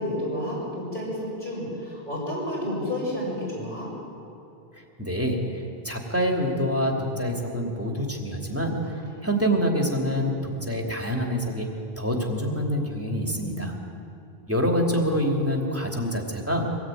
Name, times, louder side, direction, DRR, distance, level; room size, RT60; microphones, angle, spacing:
voice 1, 0.0-3.9 8.8-9.3 13.1-13.8, left 1 dB, 55° left, -6 dB, 6.6 m, -31 dB
voice 2, 5.0-13.8 14.5-16.7, equal, 15° right, 1 dB, 2.9 m, -26 dB
24.5 x 18.5 x 9.3 m, 2.7 s
omnidirectional pair, 1.0 m